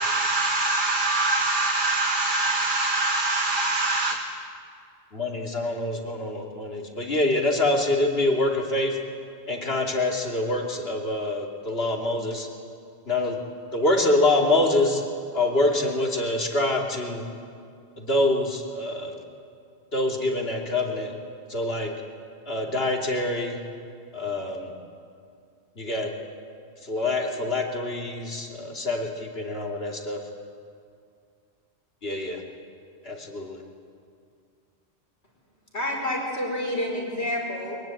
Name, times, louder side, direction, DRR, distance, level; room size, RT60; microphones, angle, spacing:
voice 1, 0.0-4.2, right 2 dB, 50° right, 1.6 m, -24 dB
voice 2, 5.1-9.0 9.5-12.5 13.1-13.4 13.7-15.0 15.3-17.3 18.0-19.2 19.9-21.1 21.5-21.9 22.5-23.6 24.1-24.7 25.8-26.1 26.8-30.2 32.0-32.4 33.0-33.6, left 2 dB, 65° left, 3.0 m, -25 dB
voice 3, 35.7-37.8, left 1 dB, 85° left, 5.4 m, -28 dB
23.0 x 22.0 x 9.1 m
omnidirectional pair, 1.1 m